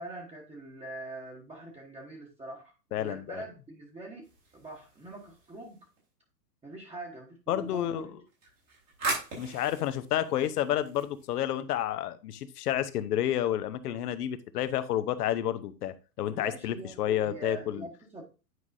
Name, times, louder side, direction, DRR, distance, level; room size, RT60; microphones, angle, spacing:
voice 1, 0.0-2.7 3.0-4.3 4.5-5.8 6.6-8.2 16.3-18.2, right 2 dB, 10° right, 1.2 m, -43 dB
voice 2, 2.9-3.4 7.5-8.1 9.3-17.9, left 11 dB, 65° left, 0.9 m, -30 dB
sound 1, 4.2-6.0 8.3-11.5, right 3 dB, 90° right, 4.3 m, -39 dB
9.5 x 4.7 x 2.6 m
hypercardioid pair, 105°, 49 cm